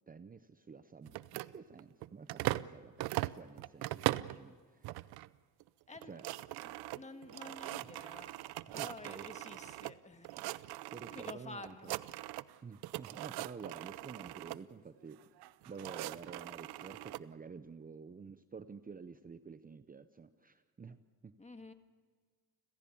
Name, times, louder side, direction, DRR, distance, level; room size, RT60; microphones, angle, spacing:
voice 1, 0.1-5.0 6.0-6.3 8.8-9.3 10.4-10.5 10.9-11.9 12.6-15.2 15.7-21.3, right 5 dB, 25° right, 11 dB, 0.8 m, -50 dB
sound 1, 1.1-2.7 3.0-4.4 4.8-5.3 5.6-5.7 5.9-9.9 10.2-11.3 11.6-12.6 12.8-14.6 15.4-17.2, right 17 dB, 90° right, 0.7 m, -40 dB
voice 2, 6.6-10.4 11.1-12.0 21.4-21.7, left 3 dB, 20° left, 8 dB, 1.7 m, -50 dB
29.5 x 16.0 x 7.1 m, 1.6 s
cardioid pair, 105°, 37 cm